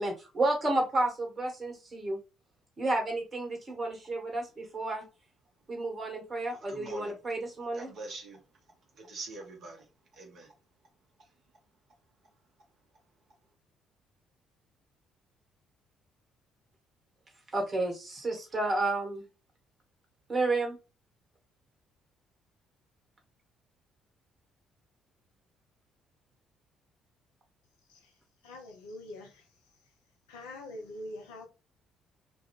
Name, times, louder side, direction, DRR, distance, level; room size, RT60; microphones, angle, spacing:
voice 1, 0.0-2.2 2.8-5.0 5.7-7.9 17.5-19.2 20.3-20.8, right 2 dB, 35° right, 1.6 m, -31 dB
voice 2, 6.7-7.2 7.7-8.4 8.9-9.9 10.1-10.5 11.2-11.3, right 2 dB, 55° right, 1.2 m, -44 dB
voice 3, 28.4-29.4 30.3-31.5, left 1 dB, 80° left, 0.7 m, -44 dB
3.0 x 2.4 x 3.1 m
figure-of-eight pair, 50°, 0 cm